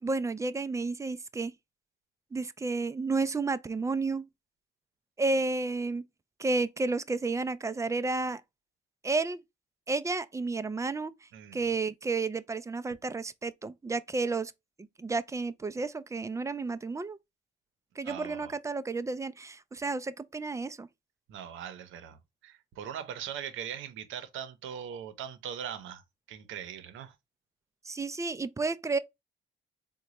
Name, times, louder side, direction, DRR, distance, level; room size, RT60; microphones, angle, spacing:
voice 1, 0.0-1.5 2.3-4.3 5.2-6.0 6.4-8.4 9.0-9.4 9.9-14.5 15.0-17.2 18.0-20.9 27.8-29.0, right 3 dB, 15° right, 0.3 m, -31 dB
voice 2, 18.0-18.6 21.3-26.0 26.3-27.1, right 9 dB, 80° right, 0.7 m, -40 dB
3.8 x 2.2 x 2.9 m
cardioid pair, 90°, 20 cm